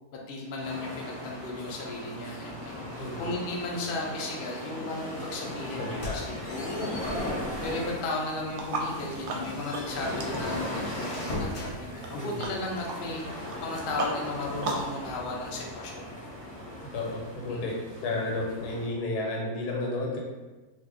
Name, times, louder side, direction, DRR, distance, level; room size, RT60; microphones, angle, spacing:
voice 1, 0.1-7.3 7.6-16.2 17.5-17.6, left 2 dB, 65° left, -1 dB, 0.5 m, -35 dB
sound 1, 0.6-18.9, equal, 5° left, 0.6 m, -38 dB
voice 2, 5.8-6.2 7.0-7.3 12.1-12.5 16.9-17.7 18.0-20.2, left 2 dB, 85° left, -1 dB, 1.3 m, -32 dB
sound 2, 5.8-7.9 8.3-8.5 8.9-11.7, left 2 dB, 45° left, 0.8 m, -40 dB
sound 3, 8.5-15.0, right 3 dB, 70° right, 0.9 m, -37 dB
2.7 x 2.5 x 3.6 m, 1.2 s
omnidirectional pair, 1.6 m